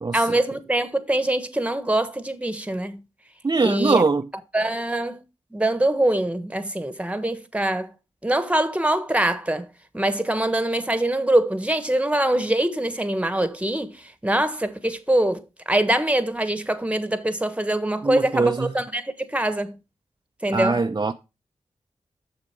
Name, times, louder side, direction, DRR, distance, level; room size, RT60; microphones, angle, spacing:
voice 1, 0.1-3.0 3.6-4.0 4.5-5.2 5.5-7.9 8.2-9.7 9.9-19.8 20.4-20.8, right 1 dB, 10° right, 1.3 m, -23 dB
voice 2, 3.4-4.2 18.0-18.7 20.5-21.1, right 3 dB, 35° right, 0.6 m, -22 dB
6.9 x 6.6 x 4.5 m
cardioid pair, 45°, 12 cm